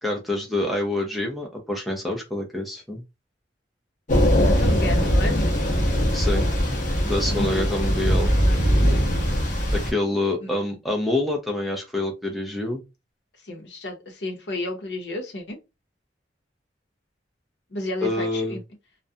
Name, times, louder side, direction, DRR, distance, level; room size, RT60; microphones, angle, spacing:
voice 1, 0.0-3.0 6.1-6.5 7.0-8.3 9.7-12.8 18.0-18.6, left 2 dB, ahead, 0.5 m, -26 dB
Thunder / Rain, 4.1-9.9, equal, 45° left, 0.7 m, -21 dB
voice 2, 4.4-5.5 7.3-7.7 8.5-9.0 10.4-10.5 13.4-15.6 17.7-18.6, left 1 dB, 70° left, 0.7 m, -32 dB
2.3 x 2.1 x 2.6 m
head